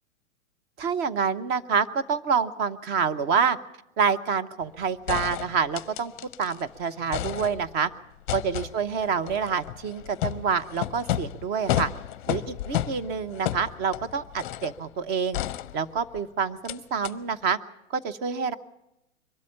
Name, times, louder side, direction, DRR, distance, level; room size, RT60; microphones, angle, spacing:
voice 1, 0.8-3.6 4.0-6.1 6.4-7.9 8.3-11.9 12.3-15.4 15.7-17.6 17.9-18.5, right 6 dB, 25° right, 11 dB, 0.8 m, -27 dB
sound 1, 4.6-4.7 5.1-6.6 6.9-7.9 8.3-14.8 15.3-16.2 16.7-16.8 17.0-17.1, left 13 dB, 35° left, 0.7 m, -32 dB
23.0 x 13.0 x 10.0 m, 0.89 s
figure-of-eight pair, 105°, 40 cm